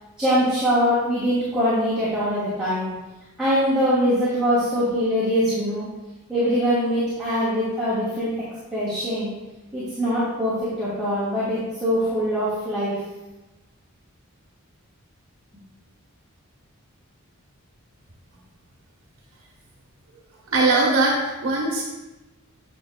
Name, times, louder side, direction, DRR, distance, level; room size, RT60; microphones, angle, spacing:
voice 1, 0.2-2.9 3.4-5.8 6.3-8.3 8.7-9.3 9.7-13.0, equal, 5° right, -13 dB, 2.3 m, -23 dB
voice 2, 20.5-21.8, right 2 dB, 65° right, -3 dB, 1.1 m, -20 dB
9.1 x 6.4 x 2.2 m, 1.1 s
head